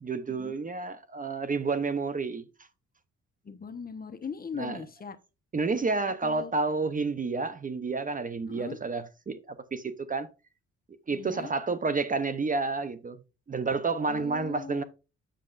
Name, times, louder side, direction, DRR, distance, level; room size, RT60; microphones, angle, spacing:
voice 1, 0.0-2.5 4.6-4.8 5.5-10.3 11.1-13.2 13.5-14.8, right 4 dB, 25° right, 0.7 m, -30 dB
voice 2, 3.4-5.2 6.2-6.5 8.5-8.8 11.1-11.5 14.1-14.8, left 6 dB, 30° left, 0.9 m, -40 dB
7.7 x 6.5 x 2.4 m
cardioid pair, 90°, 30 cm